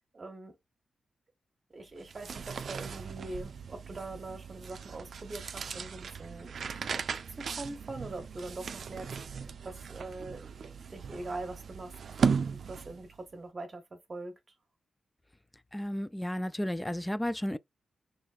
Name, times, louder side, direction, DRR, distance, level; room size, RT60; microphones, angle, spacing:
voice 1, 0.1-0.5 1.7-7.0 7.4-10.5 10.9-14.4, right 2 dB, 35° right, 1.4 m, -43 dB
sound 1, 2.0-13.2, right 6 dB, 60° right, 0.5 m, -37 dB
voice 2, 15.7-17.6, equal, 10° left, 0.3 m, -33 dB
6.2 x 3.2 x 2.4 m
wide cardioid pair, 115°, 0 cm